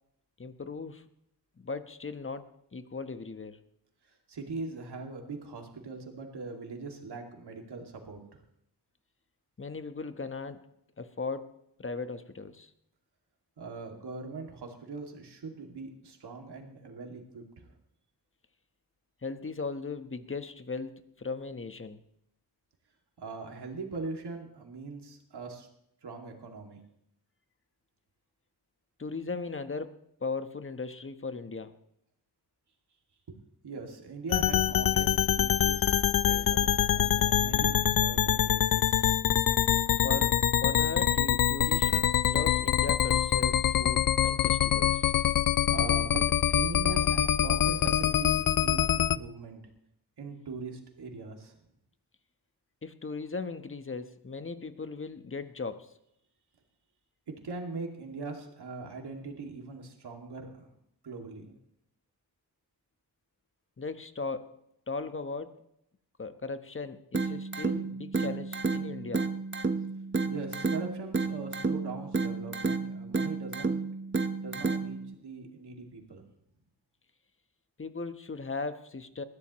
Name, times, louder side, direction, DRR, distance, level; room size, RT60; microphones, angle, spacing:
voice 1, 0.4-1.0 1.6-3.6 9.6-10.7 11.0-12.7 19.2-22.0 29.0-29.9 30.2-31.7 40.0-41.9 42.2-45.1 52.8-55.9 63.8-64.5 64.9-65.6 66.2-69.3 77.8-79.2, left 4 dB, 35° left, 9 dB, 1.2 m, -37 dB
voice 2, 4.0-8.4 13.6-17.7 23.2-25.7 26.0-26.8 33.3-39.0 45.7-49.6 50.2-51.6 57.4-60.7 61.0-61.5 70.3-73.8 74.4-76.2, right 3 dB, 90° right, 2 dB, 2.6 m, -41 dB
sound 1, 34.3-49.2, left 10 dB, 60° left, 0.5 m, -25 dB
sound 2, 67.1-75.1, right 4 dB, 30° right, 1.2 m, -31 dB
21.0 x 14.5 x 3.2 m, 0.75 s
wide cardioid pair, 80°, 39 cm